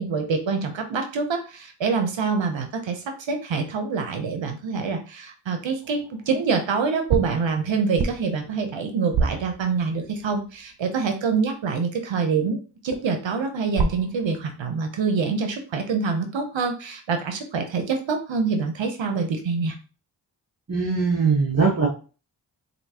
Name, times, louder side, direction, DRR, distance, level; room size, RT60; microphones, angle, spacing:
voice 1, 0.0-12.6 12.8-19.7, right 5 dB, 75° right, 5 dB, 0.8 m, -26 dB
sound 1, 5.8-6.5 7.1-10.2 12.9-14.4, right 4 dB, 50° right, 0.9 m, -30 dB
voice 2, 20.7-21.9, right 4 dB, 35° right, -1 dB, 1.2 m, -21 dB
4.4 x 2.7 x 2.8 m, 0.34 s
cardioid pair, 45°, 46 cm